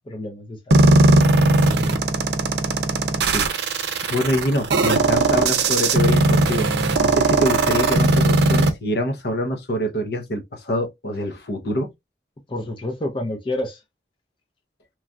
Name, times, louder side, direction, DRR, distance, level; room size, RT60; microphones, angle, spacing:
voice 1, 0.1-1.0 12.5-13.8, left 1 dB, 30° left, 0.5 m, -29 dB
sound 1, 0.7-8.7, right 2 dB, 70° right, 0.5 m, -18 dB
voice 2, 4.1-6.7 7.0-11.9, left 1 dB, 65° left, 0.7 m, -25 dB
3.1 x 2.3 x 2.5 m
head